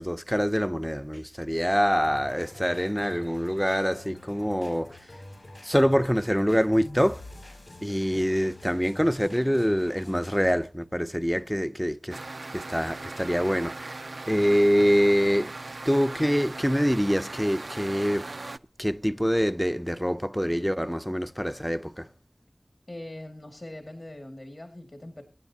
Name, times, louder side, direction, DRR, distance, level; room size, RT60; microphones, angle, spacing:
voice 1, 0.0-5.1 5.6-7.2 7.8-12.2 12.5-15.5 15.9-18.3 18.8-22.1, equal, 5° left, 0.6 m, -25 dB
sound 1, 1.9-10.5, left 1 dB, 75° left, 6.4 m, -46 dB
sound 2, 12.1-18.6, right 2 dB, 70° right, 0.5 m, -39 dB
voice 2, 22.9-25.2, left 1 dB, 50° left, 2.1 m, -41 dB
25.0 x 10.5 x 2.8 m
wide cardioid pair, 50°, 0 cm